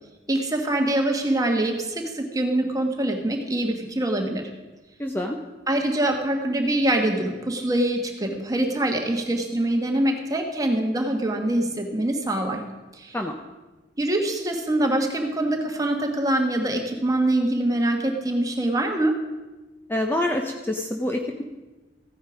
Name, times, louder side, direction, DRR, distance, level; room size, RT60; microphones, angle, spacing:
voice 1, 0.3-4.5 5.7-12.6 12.9-13.2 14.0-19.2, right 1 dB, 20° right, 3 dB, 1.4 m, -24 dB
voice 2, 5.0-5.4 13.1-13.3 19.9-21.4, left 1 dB, 10° left, 3 dB, 0.7 m, -26 dB
15.0 x 9.4 x 5.1 m, 1.2 s
head